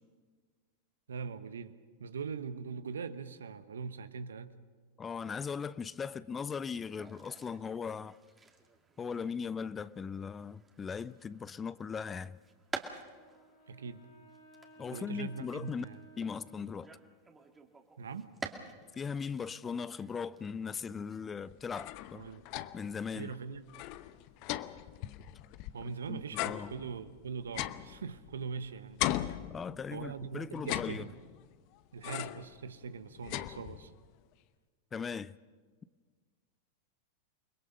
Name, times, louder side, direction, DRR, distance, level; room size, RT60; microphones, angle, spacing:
voice 1, 1.1-4.6 13.7-14.1 14.9-16.0 18.0-18.3 22.1-22.5 23.1-23.6 25.7-29.0 29.9-31.1 31.9-33.9, right 5 dB, 80° right, 1.1 m, -41 dB
voice 2, 5.0-8.2 9.0-12.4 14.8-15.9 16.2-16.9 18.9-22.2 22.7-23.3 26.1-26.7 29.5-31.1 34.9-35.3, left 6 dB, 20° left, 0.6 m, -39 dB
sound 1, 6.8-19.0 19.3-21.2, right 4 dB, 15° right, 2.3 m, -50 dB
Wind instrument woodwind instrument, 13.0-17.3, right 1 dB, 70° left, 6.0 m, -58 dB
sound 2, 21.5-23.0 23.3-23.4 23.7-25.9 26.3-28.6 29.0-30.1 30.6-31.5 32.0-32.5 32.9-34.1, left 14 dB, 50° left, 0.8 m, -38 dB
29.0 x 21.5 x 5.5 m
hypercardioid pair, 95°, 0 cm